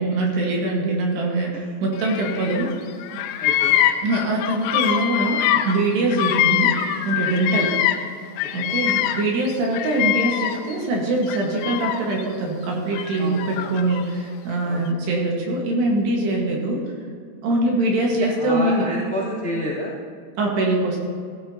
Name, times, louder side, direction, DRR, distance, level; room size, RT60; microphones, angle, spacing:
voice 1, 0.0-2.8 4.0-6.7 7.1-7.7 8.5-16.8 17.4-18.9 20.4-21.0, right 2 dB, 70° right, -1 dB, 3.5 m, -23 dB
Bird vocalization bird call bird song, 2.0-2.7 3.0-8.1 8.4-10.8 11.2-12.2 12.9-14.0, left 12 dB, 85° left, 3.0 m, -23 dB
voice 2, 3.4-3.8 7.5-7.7 8.6-8.8 13.2-13.7 14.7-14.9 16.5-16.6 17.7-17.8 18.2-19.9, equal, ahead, -8 dB, 2.3 m, -30 dB
16.5 x 13.0 x 2.8 m, 2.2 s
omnidirectional pair, 5.2 m